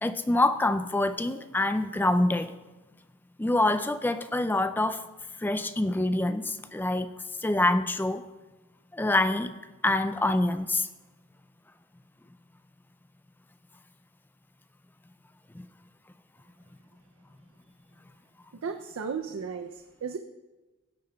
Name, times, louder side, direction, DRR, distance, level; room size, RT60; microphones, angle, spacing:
voice 1, 0.0-2.6 3.4-5.0 5.4-7.1 7.4-8.2 8.9-9.5 9.8-10.9 15.5-15.6, left 2 dB, 10° left, 10 dB, 0.3 m, -26 dB
voice 2, 18.6-20.2, right 6 dB, 75° right, 6 dB, 0.5 m, -35 dB
16.0 x 8.6 x 2.3 m, 1.2 s
head